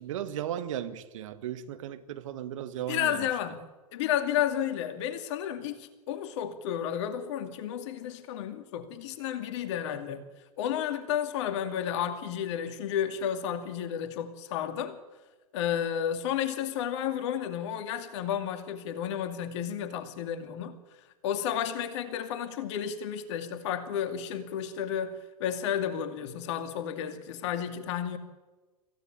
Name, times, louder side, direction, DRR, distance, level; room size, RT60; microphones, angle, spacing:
voice 1, 0.0-3.3, right 10 dB, 55° right, 2.0 m, -36 dB
voice 2, 2.9-3.6 3.9-10.2 10.6-15.0 15.5-20.8 21.2-28.2, left 9 dB, 50° left, 2.4 m, -32 dB
25.5 x 16.5 x 8.8 m
figure-of-eight pair, 100°, 19 cm